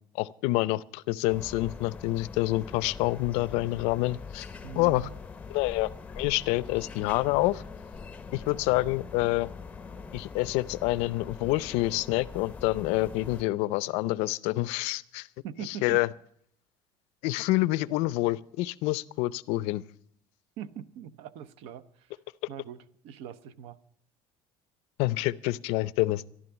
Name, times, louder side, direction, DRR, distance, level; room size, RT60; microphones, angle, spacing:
voice 1, 0.1-4.5 4.8-5.1 5.5-7.6 8.3-9.5 10.1-15.3 15.7-16.1 17.2-19.8 25.0-26.2, left 19 dB, 75° left, 0.5 m, -27 dB
sound 1, 1.3-13.4, left 5 dB, 10° left, 0.6 m, -43 dB
voice 2, 4.6-5.1 15.4-16.0 20.6-22.2 22.5-23.8, right 8 dB, 65° right, 0.8 m, -42 dB
14.0 x 11.5 x 7.1 m
cardioid pair, 180°, 11 cm